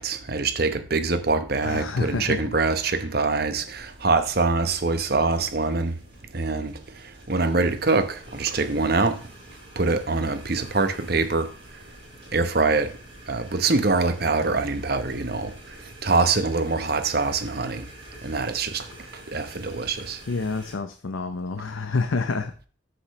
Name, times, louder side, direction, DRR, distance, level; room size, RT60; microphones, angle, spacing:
voice 1, 0.0-5.9 6.3-6.8 7.3-9.2 9.8-11.5 12.3-12.9 13.3-15.5 16.0-17.9 18.2-18.9 19.3-20.2, right 3 dB, 50° right, 1.0 m, -24 dB
voice 2, 1.6-2.5 2.8-3.1 20.3-22.7, left 3 dB, 80° left, 0.7 m, -28 dB
sound 1, 3.7-20.7, right 1 dB, 30° right, 5.5 m, -47 dB
9.9 x 7.8 x 3.2 m
head